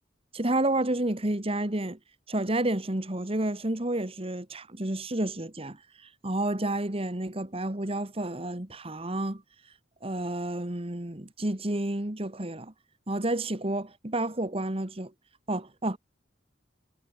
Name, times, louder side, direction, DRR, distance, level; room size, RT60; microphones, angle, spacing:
voice 1, 0.3-2.0 2.3-5.8 6.2-9.4 10.0-12.7 13.1-15.1 15.5-16.0, right 1 dB, 30° right, 1.9 m, -30 dB
head